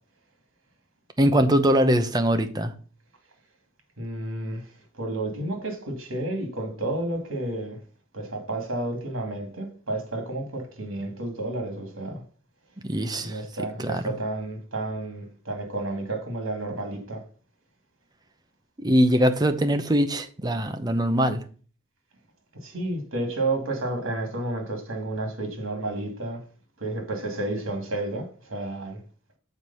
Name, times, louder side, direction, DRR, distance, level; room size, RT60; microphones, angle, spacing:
voice 1, 1.2-2.7 12.8-13.4 13.8-14.1 18.8-21.4, equal, 20° right, 0.7 m, -22 dB
voice 2, 4.0-4.6 4.9-7.8 8.1-12.2 13.2-17.2 22.6-26.4 26.8-29.0, right 2 dB, 80° right, 2.5 m, -31 dB
7.3 x 4.7 x 5.6 m
head